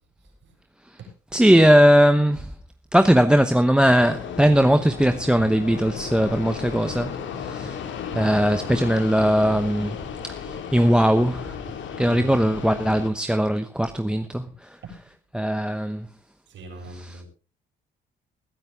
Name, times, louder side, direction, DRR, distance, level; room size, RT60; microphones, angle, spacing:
voice 1, 1.3-2.5 2.9-7.1 7.4-7.8 8.1-10.0 10.3-11.5 12.0-14.4 15.3-16.1 16.9-17.2, equal, 5° right, 1.0 m, -19 dB
Fixed-wing aircraft airplane, 4.0-13.1, left 7 dB, 70° left, 2.4 m, -34 dB
voice 2, 12.1-12.4 14.8-15.0 16.5-17.3, right 2 dB, 70° right, 7.7 m, -39 dB
20.5 x 10.5 x 3.6 m
cardioid pair, 90°, 20 cm